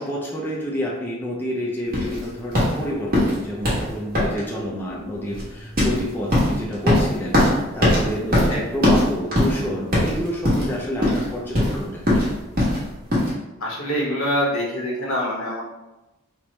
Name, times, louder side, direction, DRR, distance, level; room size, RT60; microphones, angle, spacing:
voice 1, 0.0-12.2, equal, 10° left, -4 dB, 0.4 m, -29 dB
sound 1, 1.9-13.3, left 1 dB, 45° right, 1.2 m, -21 dB
voice 2, 13.6-15.6, equal, 80° left, -4 dB, 1.0 m, -25 dB
3.1 x 2.1 x 3.9 m, 1.0 s
head